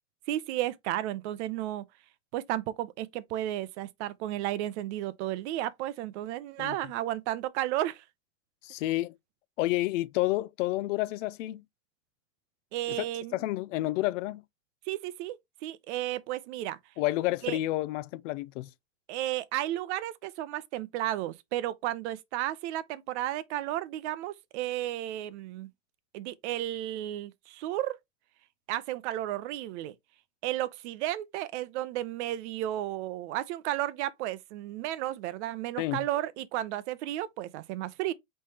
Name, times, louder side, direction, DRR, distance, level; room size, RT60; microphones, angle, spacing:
voice 1, 0.3-1.8 2.3-8.0 12.7-13.4 14.9-15.4 15.6-16.8 17.4-17.6 19.1-25.7 26.1-28.0 28.7-29.9 30.4-38.1, right 14 dB, 55° right, 0.7 m, -33 dB
voice 2, 8.6-9.1 9.6-11.6 12.9-13.1 13.3-14.4 17.0-18.7 35.8-36.1, left 17 dB, 60° left, 0.5 m, -30 dB
4.2 x 3.3 x 3.3 m
hypercardioid pair, 120°, 42 cm